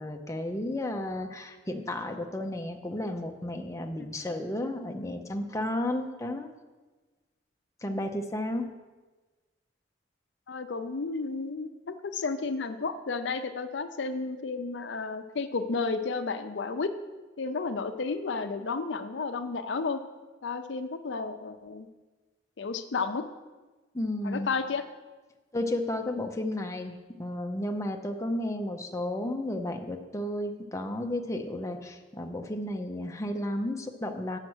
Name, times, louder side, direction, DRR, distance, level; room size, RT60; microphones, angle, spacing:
voice 1, 0.0-6.5 7.8-8.7 23.9-24.5 25.5-34.4, left 1 dB, 15° left, 4 dB, 0.6 m, -33 dB
voice 2, 10.5-16.9 17.4-20.0 20.4-21.9 22.6-23.2 24.2-24.8, left 4 dB, 75° left, 10 dB, 0.5 m, -32 dB
7.5 x 5.7 x 6.2 m, 1.3 s
head